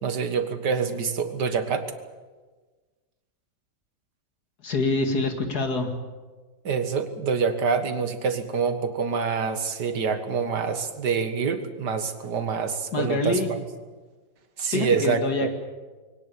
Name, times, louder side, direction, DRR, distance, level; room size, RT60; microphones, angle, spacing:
voice 1, 0.0-1.9 6.6-13.6 14.6-15.5, right 5 dB, 70° right, 9 dB, 2.2 m, -26 dB
voice 2, 4.6-5.9 12.9-13.5 14.7-15.5, left 3 dB, 60° left, 5 dB, 2.7 m, -25 dB
22.5 x 18.5 x 8.4 m, 1.3 s
omnidirectional pair, 1.9 m